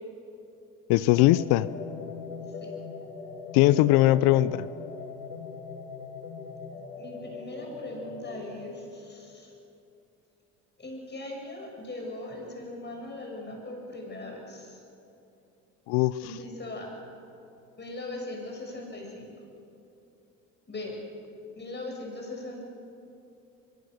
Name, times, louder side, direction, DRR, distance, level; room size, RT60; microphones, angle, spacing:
voice 1, 0.9-1.7 3.5-4.7 15.9-16.1, left 16 dB, 65° left, 18 dB, 0.8 m, -20 dB
sound 1, 1.1-8.5, left 4 dB, 85° left, 3.1 m, -40 dB
voice 2, 7.0-9.5 10.8-14.8 16.2-17.0 17.8-19.3 20.7-21.0 21.6-22.6, left 2 dB, 25° left, 0 dB, 7.5 m, -39 dB
24.0 x 22.5 x 6.7 m, 2.8 s
hypercardioid pair, 70°, 41 cm